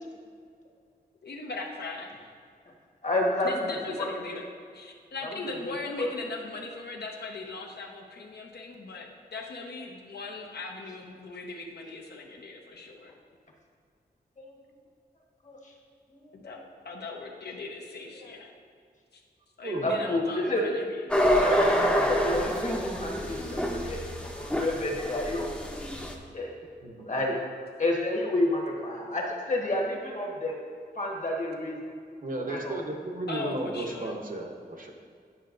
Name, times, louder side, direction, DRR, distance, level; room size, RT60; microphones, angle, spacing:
voice 1, 1.2-2.1 3.4-4.4 4.7-13.1 16.3-16.6 16.8-18.5 19.6-20.8 33.3-34.1, left 3 dB, 80° left, 1 dB, 0.8 m, -39 dB
voice 2, 3.0-4.1 5.2-6.1 14.4-14.5 15.4-15.6 16.4-16.6 18.1-18.3 19.8-20.6 21.4-26.0 26.3-26.5 27.1-27.4 27.8-30.6 31.0-31.8 32.5-32.7, left 1 dB, 45° left, -1 dB, 1.3 m, -30 dB
sound 1, 21.1-26.2, equal, 5° left, 0.6 m, -27 dB
voice 3, 26.8-27.2 32.2-34.9, right 2 dB, 55° right, 2 dB, 0.8 m, -34 dB
9.9 x 5.7 x 2.5 m, 2.2 s
wide cardioid pair, 115°, 17 cm